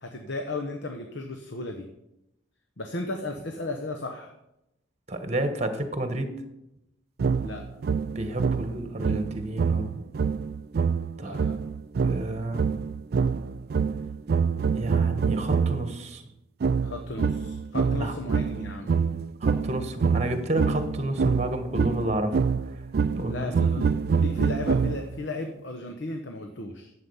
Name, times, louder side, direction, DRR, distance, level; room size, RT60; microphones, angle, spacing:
voice 1, 0.0-1.9 2.8-4.3 7.4-7.6 11.2-11.5 16.8-18.9 23.2-23.9 24.2-26.9, left 2 dB, 65° left, 5 dB, 0.9 m, -35 dB
voice 2, 5.1-6.3 8.1-10.0 11.2-11.5 12.0-12.7 14.7-16.3 18.0-18.1 19.4-22.8 23.1-23.8, right 1 dB, 35° right, 8 dB, 1.2 m, -30 dB
sound 1, 7.2-15.9 16.6-25.3, right 5 dB, 50° right, 0.3 m, -26 dB
11.5 x 7.7 x 5.6 m, 0.88 s
head